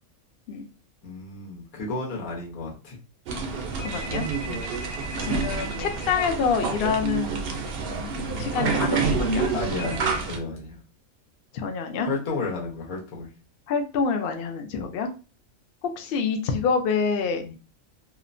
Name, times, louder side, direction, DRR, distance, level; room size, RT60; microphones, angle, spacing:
voice 1, 1.0-3.0 4.4-4.6 9.5-10.8 12.0-13.3 14.7-14.9 17.4-17.6, left 3 dB, 90° left, -2 dB, 1.4 m, -33 dB
sound 1, 3.3-10.4, right 4 dB, 65° right, 0.6 m, -28 dB
voice 2, 3.8-4.3 5.2-9.5 11.5-12.1 13.7-15.1 15.8-17.4, left 5 dB, 70° left, 5 dB, 0.5 m, -27 dB
2.9 x 2.1 x 2.5 m, 0.33 s
omnidirectional pair, 1.4 m